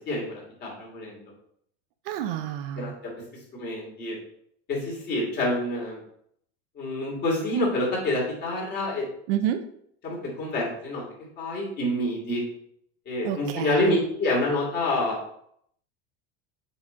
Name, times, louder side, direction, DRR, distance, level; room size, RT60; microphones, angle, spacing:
voice 1, 0.1-1.3 2.8-2.9 3.5-4.2 4.7-6.0 6.7-9.1 10.0-11.0 11.4-12.4 13.1-15.2, left 1 dB, 30° left, -3 dB, 2.8 m, -27 dB
voice 2, 2.1-3.0 9.3-9.6 13.2-14.0, right 11 dB, 60° right, 8 dB, 0.7 m, -29 dB
7.0 x 4.2 x 5.1 m, 0.69 s
cardioid pair, 170°, 32 cm